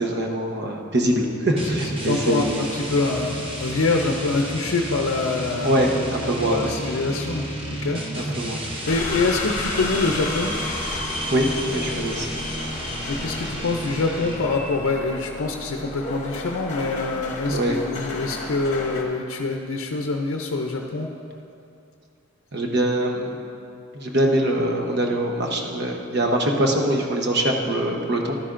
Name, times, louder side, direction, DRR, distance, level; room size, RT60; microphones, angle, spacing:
voice 1, 0.0-2.7 5.6-6.7 8.3-8.6 11.3-12.4 17.5-17.8 22.5-23.4 23.9-28.4, right 1 dB, 55° right, 1 dB, 0.9 m, -23 dB
sound 1, 1.6-14.6, right 1 dB, 25° right, 1.0 m, -32 dB
voice 2, 2.0-5.7 6.5-7.4 7.8-8.3 8.9-10.5 13.1-21.1, left 3 dB, 85° left, 2 dB, 0.5 m, -25 dB
sound 2, 8.9-19.0, left 2 dB, 35° left, 0.9 m, -32 dB
12.0 x 9.8 x 2.5 m, 2.6 s
head